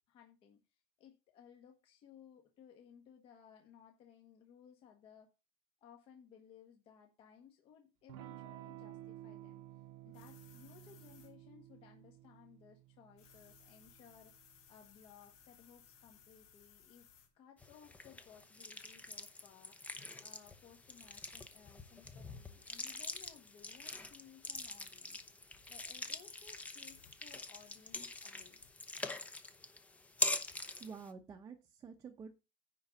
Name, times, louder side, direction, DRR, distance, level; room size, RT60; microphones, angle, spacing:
voice 1, 0.1-5.3 5.8-9.6 10.0-17.1 17.3-28.6, left 8 dB, 40° left, 2 dB, 1.6 m, -61 dB
Electric guitar / Strum, 8.1-16.4, right 14 dB, 75° right, 1.1 m, -54 dB
sound 1, 10.1-11.3 13.2-17.3 21.8-21.9 25.1-25.3 26.9-27.1 28.5-28.7, left 8 dB, 60° left, 3.4 m, -63 dB
sound 2, 17.6-31.1, left 2 dB, 10° left, 0.8 m, -44 dB
voice 2, 30.8-32.3, right 5 dB, 20° right, 4 dB, 0.9 m, -49 dB
10.0 x 3.9 x 7.1 m, 0.28 s
cardioid pair, 165°, 14 cm